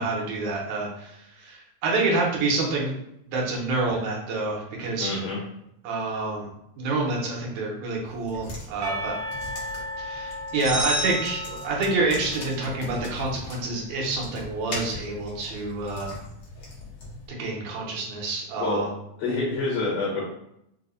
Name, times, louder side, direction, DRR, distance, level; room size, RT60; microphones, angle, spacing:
voice 1, 0.0-2.9 3.3-5.1 5.8-6.5 6.8-9.2 10.0-16.1 17.4-18.9, right 3 dB, 85° right, -2 dB, 2.2 m, -27 dB
voice 2, 5.0-5.4 18.6-18.9 19.2-20.3, left 3 dB, 70° left, -3 dB, 1.7 m, -27 dB
sound 1, 8.1-17.3, left 2 dB, 85° left, 0.9 m, -40 dB
Percussion / Church bell, 8.8-13.6, left 1 dB, 70° right, 1.5 m, -37 dB
sound 2, 10.6-12.2, right 1 dB, 30° right, 0.4 m, -30 dB
4.8 x 2.0 x 2.5 m, 0.80 s
omnidirectional pair, 3.3 m